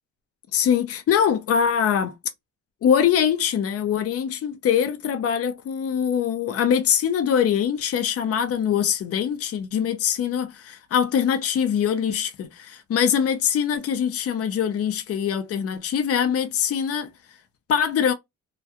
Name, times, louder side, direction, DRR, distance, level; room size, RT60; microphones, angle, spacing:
voice 1, 0.5-2.1 2.8-17.1 17.7-18.1, left 8 dB, 50° left, 0.6 m, -23 dB
2.3 x 2.3 x 2.7 m
cardioid pair, 90°, 30 cm